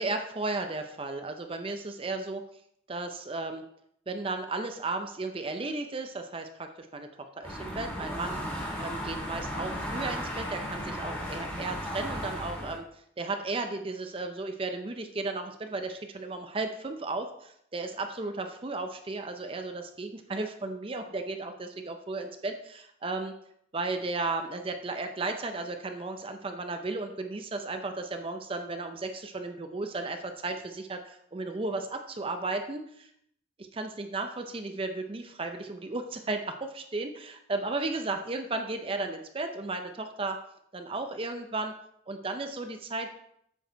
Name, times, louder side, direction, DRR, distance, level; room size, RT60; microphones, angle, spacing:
voice 1, 0.0-2.4 2.9-3.6 4.1-8.4 8.8-12.8 13.2-23.3 23.7-33.1 33.6-40.4 40.7-41.7 42.1-43.1, right 3 dB, 30° right, 6 dB, 0.5 m, -34 dB
sound 1, 7.4-12.8, equal, 10° left, 2.0 m, -35 dB
8.0 x 4.7 x 4.4 m, 0.72 s
head